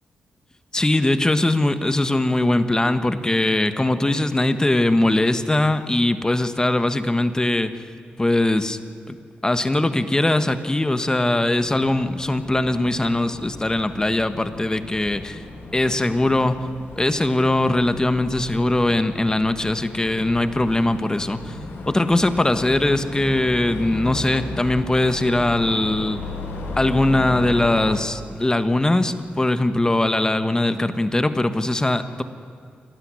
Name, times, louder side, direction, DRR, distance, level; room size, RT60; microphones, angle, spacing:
voice 1, 0.7-7.7 8.2-8.8 9.1-9.2 9.4-15.4 15.7-16.6 17.0-21.6 21.9-26.2 26.8-32.2, left 1 dB, 20° left, 10 dB, 1.5 m, -21 dB
sound 1, 11.6-28.0, left 3 dB, 85° left, 3.2 m, -35 dB
29.0 x 13.0 x 9.8 m, 2.3 s
cardioid pair, 65°, 4 cm